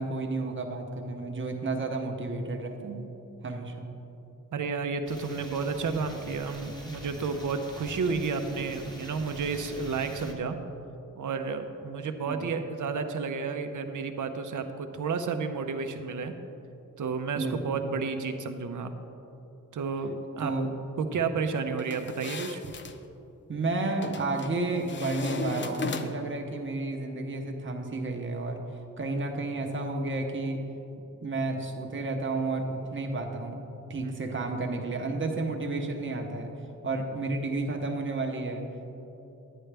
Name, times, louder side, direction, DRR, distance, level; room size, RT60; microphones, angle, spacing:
voice 1, 0.0-3.1 3.4-3.9 12.2-12.6 17.4-17.8 20.4-20.7 23.5-28.6 29.0-30.6 31.2-33.6 33.9-36.5 36.8-38.6, right 2 dB, 40° right, 3 dB, 0.9 m, -31 dB
voice 2, 4.5-10.6 11.1-16.3 17.0-18.9 19.7-20.5 21.0-22.7 34.0-34.4 36.9-37.0, right 5 dB, 70° right, 7 dB, 0.7 m, -31 dB
sound 1, 5.1-10.3, equal, 15° left, 1.0 m, -45 dB
sound 2, 21.8-23.0 24.0-24.5 24.9-26.4, left 3 dB, 35° left, 0.4 m, -36 dB
10.5 x 9.9 x 3.4 m, 3.0 s
wide cardioid pair, 150°, 32 cm